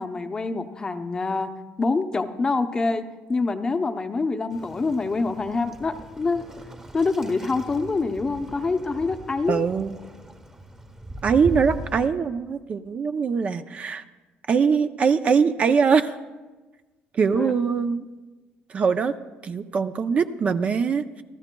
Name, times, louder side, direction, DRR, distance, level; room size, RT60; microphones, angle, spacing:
voice 1, 0.0-1.5 1.8-6.4 6.9-9.6 17.3-17.5, left 3 dB, 20° left, 8 dB, 0.7 m, -26 dB
Waves surf, 4.5-12.1, right 1 dB, 20° right, 1.2 m, -39 dB
voice 2, 9.5-10.0 11.2-14.0 14.5-16.2 17.1-18.0 18.7-19.1 19.4-21.2, right 6 dB, 35° right, 10 dB, 0.5 m, -22 dB
26.0 x 14.0 x 2.3 m, 1.2 s
cardioid pair, 135°, 4 cm